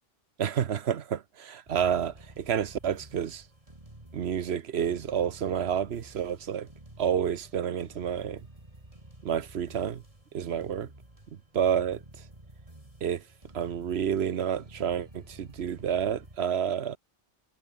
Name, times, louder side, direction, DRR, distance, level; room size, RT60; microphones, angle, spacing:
voice 1, 0.4-3.4 4.1-6.7 7.0-8.4 9.2-10.0 10.3-10.9 11.5-12.0 13.0-13.2 13.5-17.0, right 8 dB, 80° right, 1.1 m, -29 dB
sound 1, 1.7-16.4, right 1 dB, 35° right, 4.0 m, -51 dB
omnidirectional pair, 1.1 m